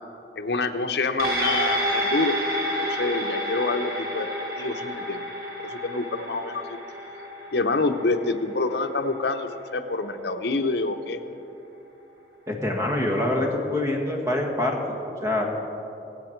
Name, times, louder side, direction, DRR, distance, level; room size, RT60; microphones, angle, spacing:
voice 1, 0.4-2.4 2.8-4.3 4.6-5.3 5.6-6.8 7.5-11.2, left 3 dB, 65° left, 6 dB, 0.8 m, -27 dB
sound 1, 1.2-9.9 10.3-10.4, equal, 55° right, 1.6 m, -30 dB
voice 2, 12.5-15.5, left 1 dB, 20° right, 0 dB, 1.6 m, -25 dB
22.5 x 8.1 x 4.5 m, 2.9 s
head